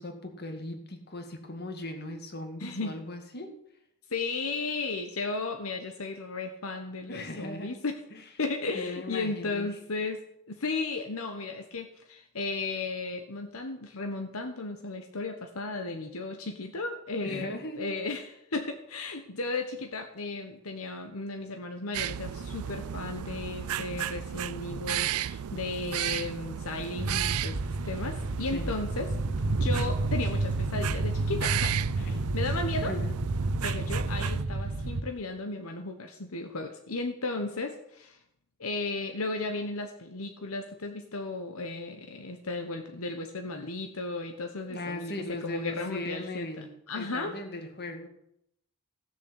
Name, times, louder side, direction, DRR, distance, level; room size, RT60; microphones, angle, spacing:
voice 1, 0.0-3.5 7.1-7.7 8.1-8.2 8.7-9.7 17.2-17.8 28.5-28.8 31.8-33.2 44.7-48.1, left 1 dB, 50° left, 6 dB, 2.2 m, -38 dB
voice 2, 2.6-3.0 4.1-8.0 8.4-10.2 10.5-27.6 27.8-29.1 29.5-33.0 33.6-38.2 38.6-47.4, left 3 dB, 75° left, 6 dB, 1.2 m, -35 dB
sound 1, 21.9-34.4, right 10 dB, 90° right, 0.4 m, -35 dB
sound 2, 27.0-35.0, right 2 dB, 65° right, 0.9 m, -30 dB
16.0 x 7.1 x 8.1 m, 0.76 s
head